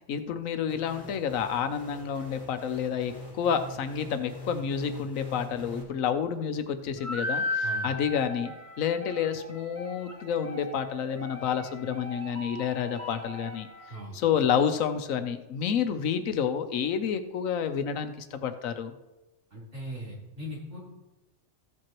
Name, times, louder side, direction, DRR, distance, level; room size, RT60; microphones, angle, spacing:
voice 1, 0.1-13.7 14.1-18.9, left 7 dB, 85° left, 9 dB, 1.1 m, -29 dB
sound 1, 0.7-5.8, left 2 dB, 10° left, 3.2 m, -43 dB
sound 2, 7.0-14.0, left 1 dB, 15° right, 0.9 m, -36 dB
voice 2, 19.5-20.8, equal, 60° right, -7 dB, 4.1 m, -39 dB
15.0 x 7.7 x 3.0 m, 1.0 s
omnidirectional pair, 1.4 m